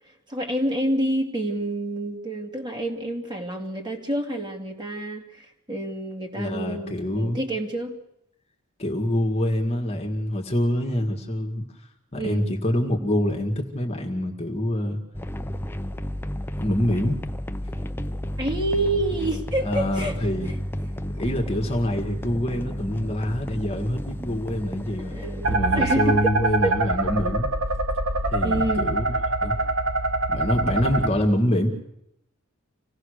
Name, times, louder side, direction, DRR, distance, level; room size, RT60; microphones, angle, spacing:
voice 1, 0.3-8.0 12.2-12.5 18.4-20.2 25.1-26.3 26.6-26.8 28.4-28.9, right 1 dB, 20° right, 2 dB, 2.7 m, -28 dB
voice 2, 6.4-7.4 8.8-11.7 12.1-15.0 16.6-17.2 19.6-20.5 21.2-25.2 25.5-27.5 28.3-29.0 29.4-29.6 30.3-31.7, left 1 dB, 30° left, 3 dB, 2.0 m, -25 dB
sound 1, 15.1-25.6, equal, 10° left, 0.7 m, -32 dB
sound 2, 25.4-31.1, right 2 dB, 70° right, 2.1 m, -24 dB
26.0 x 17.5 x 6.6 m, 0.81 s
head